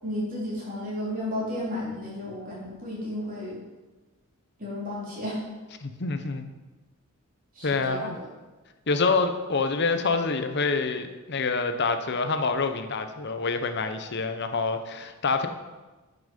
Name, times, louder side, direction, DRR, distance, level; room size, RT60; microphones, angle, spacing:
voice 1, 0.0-3.5 4.6-5.4 7.6-8.2, left 1 dB, 40° right, -5 dB, 3.5 m, -33 dB
voice 2, 5.8-6.5 7.6-8.2 8.9-15.5, left 4 dB, 55° left, 8 dB, 0.8 m, -26 dB
10.5 x 5.9 x 5.3 m, 1.2 s
head